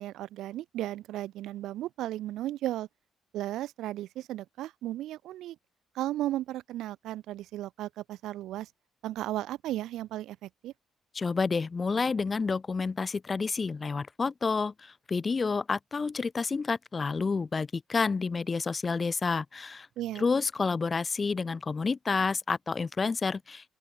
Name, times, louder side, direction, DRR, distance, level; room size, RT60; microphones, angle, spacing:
voice 1, 0.0-2.9 3.3-5.6 5.9-8.7 9.0-10.7 20.0-20.2, right 14 dB, 85° right, 7.5 m, -35 dB
voice 2, 11.1-19.9 20.2-23.7, left 4 dB, 35° left, 1.7 m, -29 dB
open air
cardioid pair, 90°, 0 cm